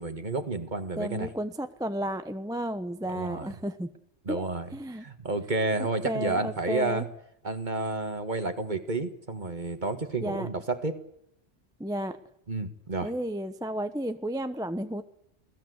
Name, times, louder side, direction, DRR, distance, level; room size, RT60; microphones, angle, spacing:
voice 1, 0.0-1.3 3.0-3.5 4.2-7.1 7.4-11.0 12.5-13.1, right 3 dB, 40° right, 9 dB, 1.9 m, -31 dB
voice 2, 1.0-3.9 4.3-4.5 4.7-5.0 6.0-7.0 10.2-10.5 11.8-12.2 13.0-15.0, equal, 5° right, 10 dB, 0.8 m, -32 dB
26.5 x 17.5 x 8.0 m, 0.76 s
omnidirectional pair, 1.2 m